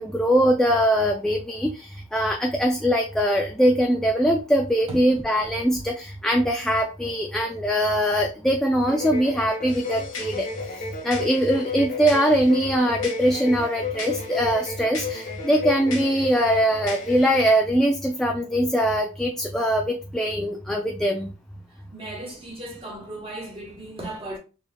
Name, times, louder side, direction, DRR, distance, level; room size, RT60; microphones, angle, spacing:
voice 1, 0.0-10.5 11.0-21.3, equal, 5° left, 0.3 m, -22 dB
sound 1, 8.8-17.4, left 5 dB, 45° left, 0.8 m, -33 dB
sound 2, 9.7-17.3, left 4 dB, 80° left, 1.5 m, -41 dB
voice 2, 21.9-24.4, right 1 dB, 30° right, 1.3 m, -36 dB
4.1 x 3.0 x 2.2 m
head